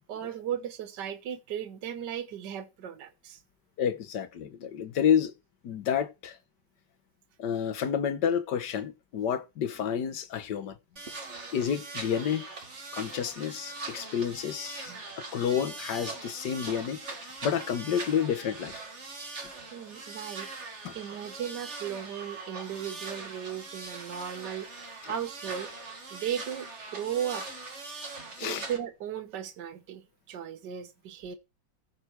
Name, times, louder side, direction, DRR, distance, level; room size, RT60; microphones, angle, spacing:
voice 1, 0.1-3.4 14.9-15.0 19.7-25.7 26.1-27.5 28.4-31.3, right 9 dB, 70° right, 1.8 m, -36 dB
voice 2, 3.8-5.3 5.6-6.4 7.4-10.7 11.5-12.4 12.9-14.9 15.3-17.1 17.4-18.8 20.8-20.9 28.4-28.6, left 8 dB, 70° left, 1.7 m, -29 dB
sound 1, 11.0-28.8, right 3 dB, 40° right, 2.1 m, -41 dB
14.5 x 6.0 x 4.6 m
omnidirectional pair, 2.0 m